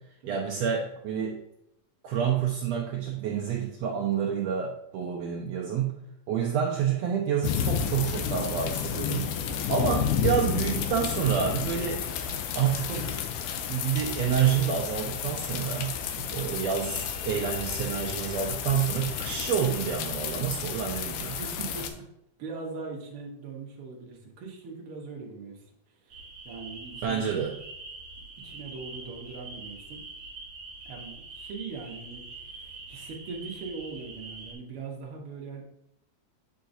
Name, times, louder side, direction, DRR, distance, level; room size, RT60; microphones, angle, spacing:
voice 1, 0.3-1.4 2.0-5.9 6.3-9.3 9.7-12.0 12.5-13.1 13.7-15.9 16.2-21.4 27.0-27.5, right 8 dB, 85° right, -1 dB, 1.4 m, -28 dB
sound 1, 7.4-21.9, left 8 dB, 80° left, 2.0 m, -31 dB
voice 2, 9.4-9.8 21.4-22.1 22.4-25.6 26.0-27.2 28.4-30.0 30.8-35.6, right 4 dB, 60° right, -1 dB, 1.5 m, -41 dB
sound 2, 26.1-34.5, right 3 dB, 45° right, 2.0 m, -44 dB
8.8 x 4.6 x 2.6 m, 0.81 s
omnidirectional pair, 3.7 m